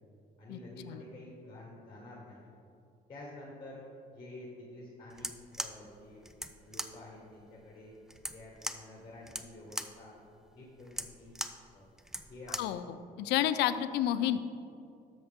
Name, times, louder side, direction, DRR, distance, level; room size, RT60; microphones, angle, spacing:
voice 1, 0.4-2.5 3.1-3.8 4.1-5.3 5.6-6.2 6.6-7.9 8.3-10.1 10.5-11.9 12.3-12.7, left 1 dB, 25° left, -3 dB, 1.8 m, -49 dB
sound 1, 5.1-12.8, equal, 5° right, 0.4 m, -41 dB
voice 2, 13.2-14.4, left 11 dB, 85° left, 12 dB, 0.5 m, -29 dB
12.5 x 6.3 x 3.6 m, 2.5 s
cardioid pair, 110°, 17 cm